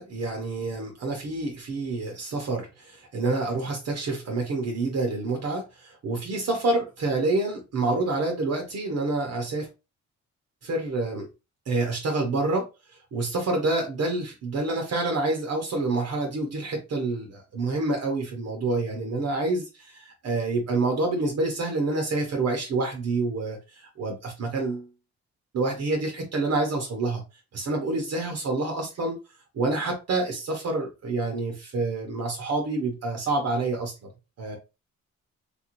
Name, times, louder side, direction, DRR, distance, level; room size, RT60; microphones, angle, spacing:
voice 1, 0.0-9.7 10.6-11.3 11.7-12.7 13.1-24.9 25.5-27.2 27.5-29.2 29.5-34.1 34.4-34.6, right 2 dB, 55° right, 1.0 m, -27 dB
3.4 x 2.6 x 3.0 m
cardioid pair, 90°, 30 cm